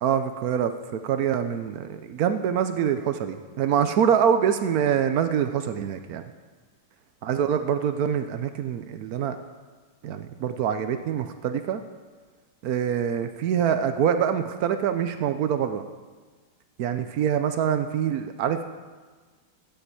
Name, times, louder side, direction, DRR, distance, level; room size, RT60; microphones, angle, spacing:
voice 1, 0.0-6.2 7.2-9.4 10.0-11.8 12.6-15.8 16.8-18.6, right 8 dB, 85° right, 9 dB, 0.8 m, -25 dB
13.0 x 8.0 x 8.3 m, 1.4 s
omnidirectional pair, 2.4 m